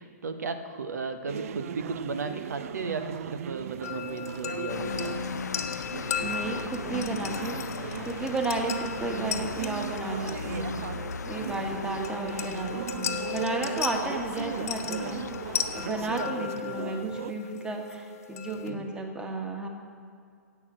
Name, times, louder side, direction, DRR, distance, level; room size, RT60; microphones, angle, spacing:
voice 1, 0.0-5.3 16.2-16.4 18.7-18.9, right 4 dB, 75° right, 9 dB, 0.9 m, -35 dB
sound 1, 1.3-17.3, right 10 dB, 60° right, 0.4 m, -38 dB
sound 2, 3.8-18.7, left 8 dB, 65° left, 1.3 m, -37 dB
sound 3, 4.7-16.2, left 5 dB, 85° left, 0.5 m, -38 dB
voice 2, 6.2-7.6 8.0-10.8 11.2-15.3 15.7-19.7, right 2 dB, 10° right, 3 dB, 1.5 m, -33 dB
12.0 x 8.1 x 7.6 m, 2.3 s
hypercardioid pair, 125°, 9 cm